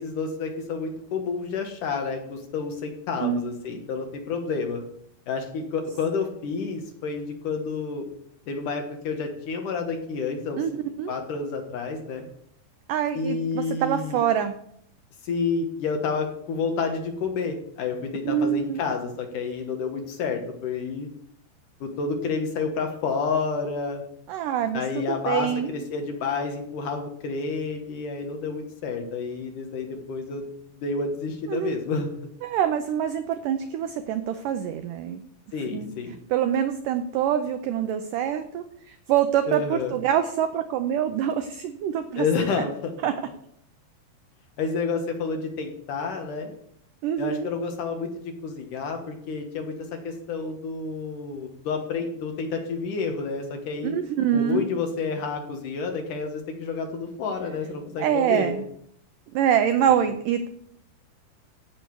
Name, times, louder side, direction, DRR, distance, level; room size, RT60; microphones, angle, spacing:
voice 1, 0.0-4.8 5.3-8.1 8.5-10.6 11.1-12.3 13.1-14.2 15.2-21.1 21.8-24.0 24.7-30.4 30.8-32.1 35.5-36.2 39.5-39.9 42.2-42.9 44.6-46.5 47.2-53.9 54.3-58.5, left 4 dB, 65° left, 4 dB, 2.4 m, -29 dB
voice 2, 10.6-11.1 12.9-14.6 18.2-18.8 24.3-25.7 31.5-31.8 32.4-35.2 35.7-35.9 36.3-42.3 43.0-43.1 47.0-47.5 53.8-54.7 58.0-58.7 59.3-60.5, right 9 dB, 85° right, 8 dB, 1.9 m, -25 dB
15.5 x 6.6 x 4.6 m, 0.68 s
omnidirectional pair, 4.6 m